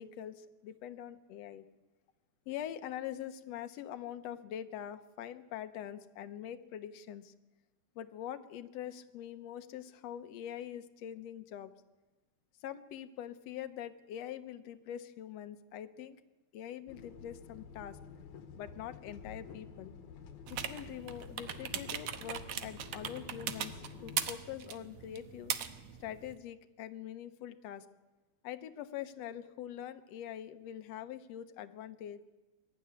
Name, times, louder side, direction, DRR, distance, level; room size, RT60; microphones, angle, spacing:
voice 1, 0.0-1.7 2.5-7.3 8.0-11.7 12.6-16.2 16.5-18.0 18.6-19.9 20.5-25.5 26.0-27.9 28.4-32.2, left 10 dB, 70° left, 10 dB, 2.0 m, -44 dB
sound 1, 16.9-24.3, left 6 dB, 90° left, 2.7 m, -50 dB
sound 2, 20.5-26.4, right 9 dB, 70° right, 2.1 m, -40 dB
22.5 x 13.0 x 9.7 m, 1.1 s
omnidirectional pair, 3.3 m